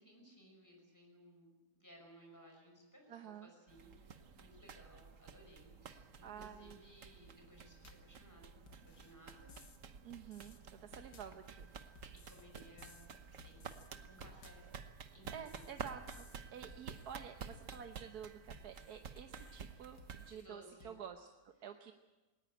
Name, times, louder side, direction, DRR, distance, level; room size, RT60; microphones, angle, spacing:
voice 1, 0.0-9.6 11.8-14.7 15.1-15.7 20.2-21.0, equal, 10° left, 0 dB, 6.0 m, -61 dB
voice 2, 3.1-3.5 6.2-6.8 10.0-11.7 15.3-21.9, right 8 dB, 75° right, 6 dB, 1.5 m, -50 dB
sound 1, 3.7-20.3, right 6 dB, 55° right, 1.4 m, -52 dB
sound 2, 7.8-8.2 8.7-9.8 10.1-10.6 10.9-11.4 12.0-13.1 13.4-13.9 14.2-14.7 15.2-16.4 16.7-17.2 17.5-18.0 18.5-19.7 20.0-20.5 20.8-21.0, left 5 dB, 85° left, 2.3 m, -61 dB
19.5 x 19.5 x 8.9 m, 1.1 s
omnidirectional pair, 1.7 m